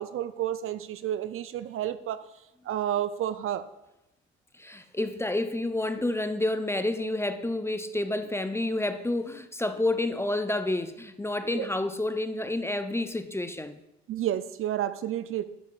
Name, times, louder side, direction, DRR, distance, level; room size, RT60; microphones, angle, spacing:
voice 1, 0.0-2.2 2.6-3.6 11.5-11.7 14.1-15.4, right 11 dB, 45° right, 13 dB, 0.6 m, -30 dB
voice 2, 4.6-13.8, left 2 dB, 10° left, 10 dB, 0.7 m, -29 dB
11.0 x 10.5 x 2.6 m, 0.91 s
figure-of-eight pair, 50°, 31 cm